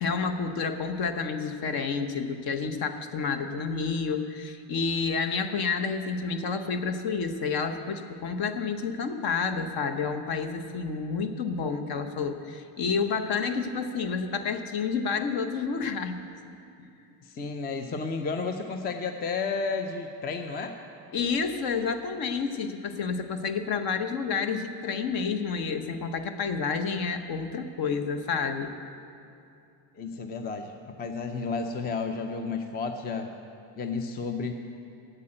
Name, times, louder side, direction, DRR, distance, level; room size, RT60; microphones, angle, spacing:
voice 1, 0.0-16.2 21.1-28.7, left 5 dB, 45° left, 8 dB, 0.9 m, -29 dB
voice 2, 17.3-20.7 30.0-33.3 33.8-34.5, left 4 dB, 20° left, 6 dB, 0.5 m, -32 dB
8.3 x 7.8 x 8.7 m, 2.6 s
supercardioid pair, 115°, 49 cm